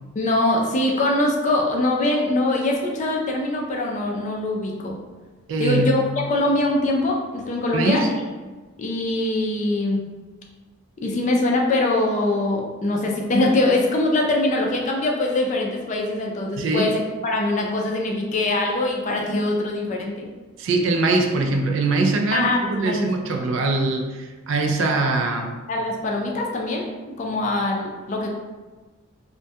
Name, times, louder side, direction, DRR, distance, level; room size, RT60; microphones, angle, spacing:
voice 1, 0.2-5.0 5.6-6.0 6.3-8.0 8.8-10.0 11.0-20.3 22.3-23.1 25.7-26.8 27.2-28.3, left 2 dB, 35° left, 0 dB, 0.3 m, -23 dB
voice 2, 5.5-6.0 7.7-8.1 16.6-16.9 20.6-25.5, right 3 dB, 60° right, 3 dB, 0.3 m, -22 dB
2.2 x 2.1 x 2.6 m, 1.3 s
head